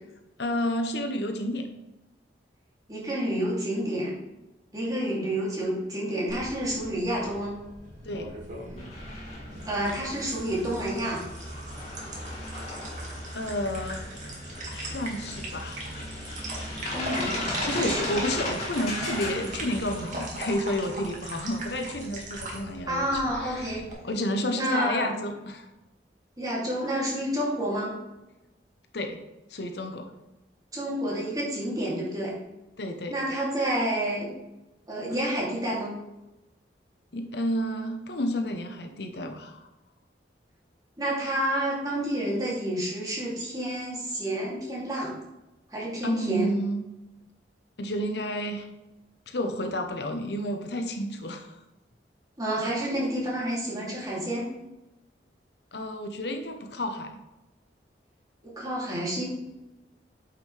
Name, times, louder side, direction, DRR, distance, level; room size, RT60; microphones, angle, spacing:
voice 1, 0.4-1.7 8.0-8.3 13.3-14.0 14.7-15.9 17.6-25.7 28.9-29.2 29.5-30.1 32.8-33.1 37.1-39.7 46.0-46.9 47.8-48.7 49.3-51.6 55.7-57.1, equal, 70° left, 6 dB, 0.9 m, -31 dB
voice 2, 2.9-4.1 4.7-7.5 9.7-11.2 16.9-18.1 22.9-23.8 24.5-25.1 26.4-27.9 30.7-32.3 33.1-34.3 34.9-35.9 41.0-45.1 45.7-46.5 52.4-54.5 58.6-59.2, right 1 dB, 20° right, -6 dB, 2.8 m, -29 dB
sound 1, 6.3-23.9, right 1 dB, 45° right, 2.0 m, -40 dB
sound 2, 8.8-20.2, left 1 dB, 40° left, 2.7 m, -36 dB
9.0 x 6.0 x 3.3 m, 0.98 s
head